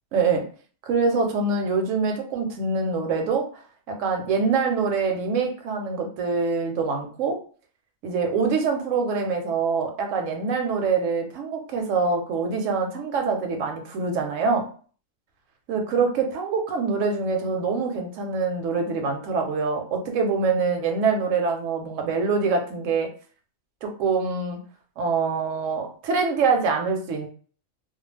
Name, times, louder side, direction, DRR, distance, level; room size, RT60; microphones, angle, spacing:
voice 1, 0.1-0.5 0.9-3.5 3.9-7.4 8.0-14.7 15.7-23.1 23.8-24.6 25.0-27.3, right 4 dB, 75° right, 4 dB, 1.0 m, -24 dB
2.3 x 2.2 x 3.2 m, 0.42 s
omnidirectional pair, 1.4 m